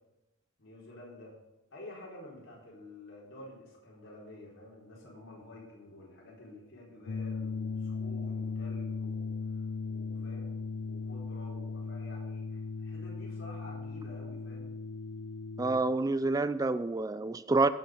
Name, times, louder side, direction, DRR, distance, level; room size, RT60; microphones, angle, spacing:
voice 1, 0.6-1.4 1.7-14.7, left 1 dB, 85° left, 4.4 m, -50 dB
sound 1, 7.1-15.8, left 4 dB, 60° left, 0.5 m, -37 dB
voice 2, 15.6-17.7, right 3 dB, 20° right, 0.3 m, -28 dB
15.5 x 6.0 x 6.5 m
head